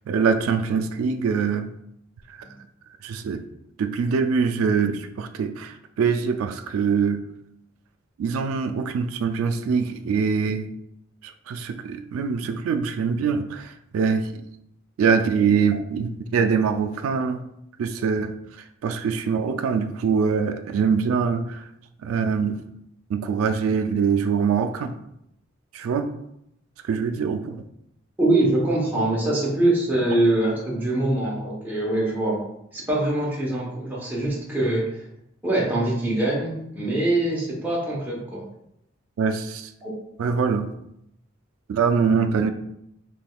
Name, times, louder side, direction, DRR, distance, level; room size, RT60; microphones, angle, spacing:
voice 1, 0.1-1.7 3.0-3.4 3.8-7.2 8.2-10.7 11.5-14.3 15.0-17.4 17.8-18.3 18.8-21.6 22.0-22.6 23.1-24.9 25.7-26.1 26.9-27.6 31.2-31.3 39.2-39.7 40.2-40.7 41.7-42.5, right 6 dB, 85° right, 11 dB, 0.3 m, -23 dB
voice 2, 28.2-32.4 32.7-34.9 35.4-38.4 39.8-39.9, right 1 dB, 10° right, -6 dB, 0.8 m, -23 dB
3.4 x 3.2 x 2.2 m, 0.78 s
head